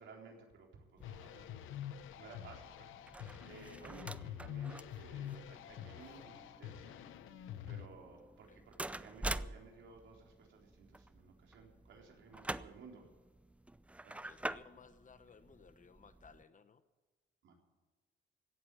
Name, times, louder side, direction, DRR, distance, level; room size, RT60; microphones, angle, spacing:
voice 1, 0.0-1.9 2.2-2.9 3.4-7.0 7.7-8.7 9.0-13.1 14.0-14.2 17.4-17.6, right 4 dB, 70° right, 0 dB, 4.0 m, -56 dB
sound 1, 1.0-7.9, left 10 dB, 85° left, 0.8 m, -47 dB
sound 2, 1.0-16.4, right 1 dB, 5° right, 0.5 m, -47 dB
voice 2, 14.2-16.8, left 5 dB, 40° left, 11 dB, 1.1 m, -60 dB
17.0 x 8.0 x 9.8 m, 1.3 s
cardioid pair, 90°, 20 cm